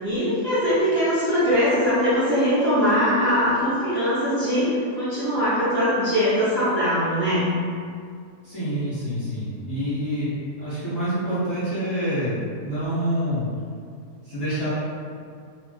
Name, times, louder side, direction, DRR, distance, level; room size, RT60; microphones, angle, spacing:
voice 1, 0.0-4.7 5.0-7.4, equal, 55° right, -13 dB, 0.7 m, -21 dB
voice 2, 8.4-13.5 14.2-14.7, equal, 30° left, -14 dB, 0.8 m, -27 dB
2.6 x 2.2 x 2.3 m, 2.2 s
omnidirectional pair, 1.7 m